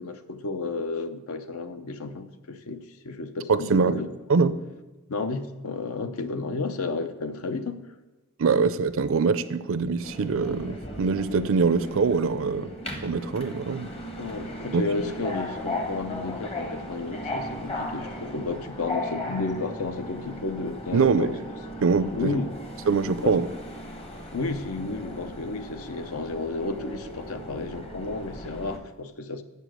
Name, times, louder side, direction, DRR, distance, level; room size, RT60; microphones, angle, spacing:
voice 1, 0.0-4.1 5.1-7.9 14.2-21.3 22.1-22.5 23.2-23.4 24.3-29.4, left 3 dB, 75° left, 10 dB, 0.7 m, -32 dB
voice 2, 3.5-4.0 4.3-4.5 8.4-12.7 13.0-13.9 14.7-14.9 20.9-21.3 21.8-22.4 22.9-23.5, right 5 dB, 60° right, 14 dB, 0.5 m, -23 dB
Subway metro underground, 10.0-28.8, left 1 dB, 25° left, 0.9 m, -37 dB
7.9 x 7.0 x 6.2 m, 1.1 s
head